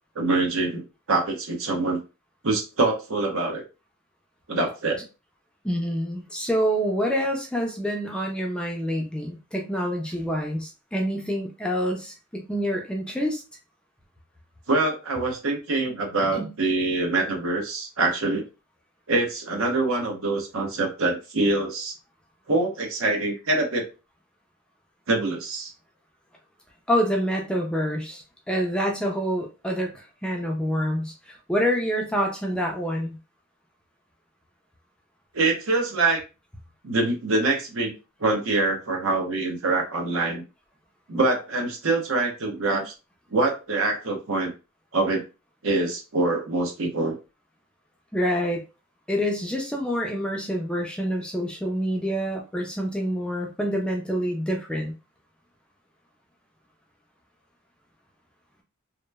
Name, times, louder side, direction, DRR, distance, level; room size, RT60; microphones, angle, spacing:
voice 1, 0.2-0.8 1.1-2.0 2.4-3.6 4.5-5.0 14.7-18.5 19.1-21.9 22.5-23.8 25.1-25.7 35.3-36.2 36.8-37.9 38.2-40.4 41.1-42.9 43.3-44.5 44.9-45.2 45.6-47.2, right 2 dB, 70° right, 1 dB, 0.8 m, -24 dB
voice 2, 5.6-13.4 16.4-16.5 26.9-33.2 48.1-48.6 49.1-54.9, equal, 5° left, 0 dB, 0.4 m, -27 dB
2.9 x 2.0 x 2.2 m, 0.30 s
head